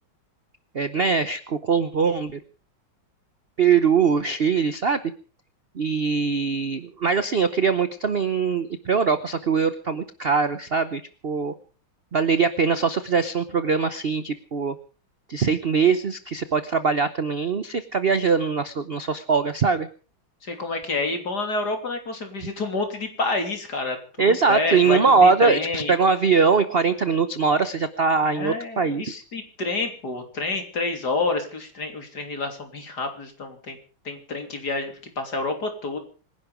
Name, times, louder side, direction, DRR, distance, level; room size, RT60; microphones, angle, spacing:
voice 1, 0.7-2.4 3.6-5.0 5.7-11.5 12.1-14.7 15.3-19.9 22.4-22.5 24.2-29.2, right 5 dB, 50° right, 12 dB, 0.7 m, -22 dB
voice 2, 20.4-24.0 24.5-25.9 28.2-29.1 29.3-33.8 34.1-36.0, left 3 dB, 50° left, 5 dB, 3.6 m, -28 dB
25.5 x 11.0 x 5.1 m, 0.39 s
omnidirectional pair, 2.3 m